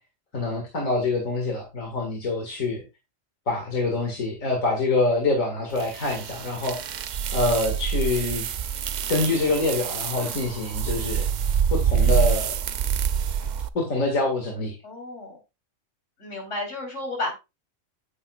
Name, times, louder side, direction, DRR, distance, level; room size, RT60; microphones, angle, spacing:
voice 1, 0.3-2.8 3.5-6.8 7.3-8.5 9.1-11.3 11.7-12.6 13.3-13.4 13.7-14.8, left 2 dB, 90° left, 0 dB, 2.4 m, -25 dB
sound 1, 5.8-13.7, right 7 dB, 70° right, 0.4 m, -26 dB
voice 2, 14.8-15.4 16.2-17.3, left 2 dB, 65° left, 0 dB, 3.9 m, -32 dB
9.3 x 8.2 x 2.4 m, 0.25 s
omnidirectional pair, 1.4 m